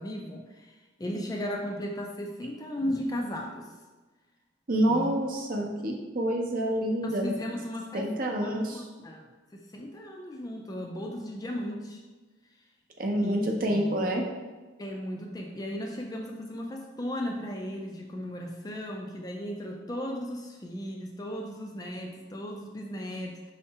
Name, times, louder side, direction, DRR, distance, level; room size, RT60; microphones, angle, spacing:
voice 1, 0.0-3.7 4.9-5.1 7.0-8.1 8.4-12.0 13.2-14.0 14.8-23.5, equal, 20° left, 1 dB, 0.3 m, -36 dB
voice 2, 4.7-7.4 7.9-8.8 13.0-14.2, right 1 dB, 45° right, 1 dB, 0.6 m, -27 dB
5.5 x 3.3 x 2.8 m, 1.2 s
head